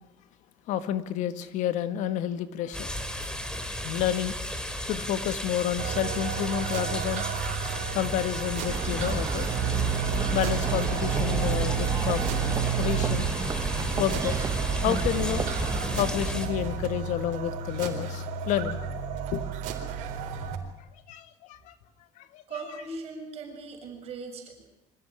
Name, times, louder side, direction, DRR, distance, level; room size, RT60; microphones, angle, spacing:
voice 1, 0.7-2.9 3.2-3.4 3.7-4.4 4.8-9.5 10.3-12.2 12.8-13.6 14.0-14.4 14.8-15.5 15.8-18.8 19.3-19.5 21.1-21.7 22.2-22.4, left 11 dB, 70° left, 11 dB, 1.8 m, -30 dB
sound 1, 2.7-16.5, left 1 dB, 5° left, 3.4 m, -34 dB
sound 2, 5.8-20.6, right 7 dB, 75° right, 4.2 m, -32 dB
sound 3, 8.7-15.8, right 5 dB, 25° right, 1.3 m, -31 dB
voice 2, 22.5-24.7, right 3 dB, 50° right, 3 dB, 7.0 m, -39 dB
25.5 x 16.5 x 9.9 m, 0.94 s
cardioid pair, 125°, 13 cm